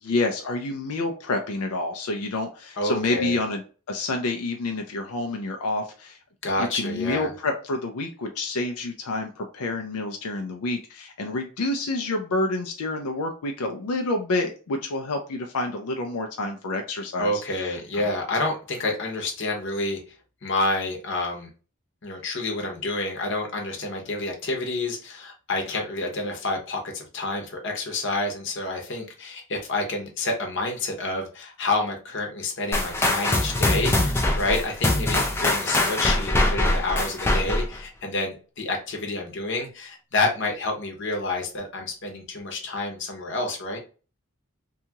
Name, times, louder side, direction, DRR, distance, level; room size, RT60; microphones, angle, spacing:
voice 1, 0.0-3.6 3.9-6.2 6.6-17.4 17.9-18.1, left 2 dB, 90° left, 4 dB, 0.5 m, -28 dB
voice 2, 2.8-3.4 6.4-7.3 17.2-20.0 20.4-21.5 22.0-43.8, left 2 dB, 55° left, 1 dB, 0.8 m, -28 dB
sound 1, 32.7-37.8, left 1 dB, 10° left, 0.3 m, -23 dB
2.8 x 2.3 x 2.8 m, 0.36 s
head